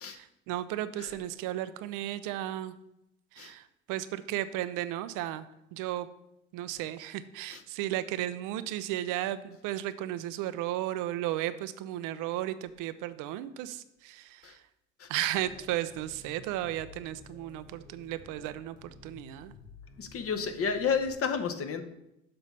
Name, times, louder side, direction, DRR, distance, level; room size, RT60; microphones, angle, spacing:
voice 1, 0.0-2.7 3.3-6.1 6.5-14.6 15.1-19.5, right 13 dB, 55° right, 13 dB, 0.5 m, -34 dB
sound 1, 15.3-21.1, left 3 dB, 85° left, 1.5 m, -53 dB
voice 2, 20.0-21.8, left 6 dB, 40° left, 9 dB, 0.8 m, -31 dB
6.7 x 3.9 x 5.4 m, 0.84 s
hypercardioid pair, 65°, 37 cm